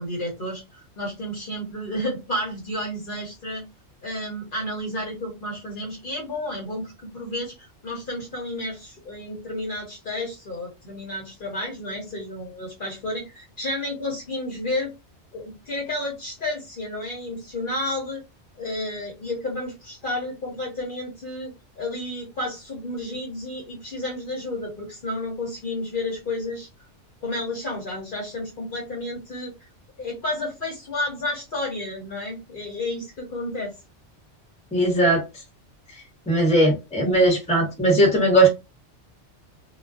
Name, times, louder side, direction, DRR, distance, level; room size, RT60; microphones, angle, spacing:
voice 1, 0.0-3.6 4.0-14.9 15.3-18.2 18.6-26.7 27.2-29.5 30.0-33.7, left 1 dB, 50° left, -1 dB, 0.8 m, -31 dB
voice 2, 34.7-35.2 36.3-38.5, right 1 dB, 5° left, -1 dB, 0.8 m, -18 dB
2.3 x 2.3 x 2.3 m, 0.25 s
omnidirectional pair, 1.2 m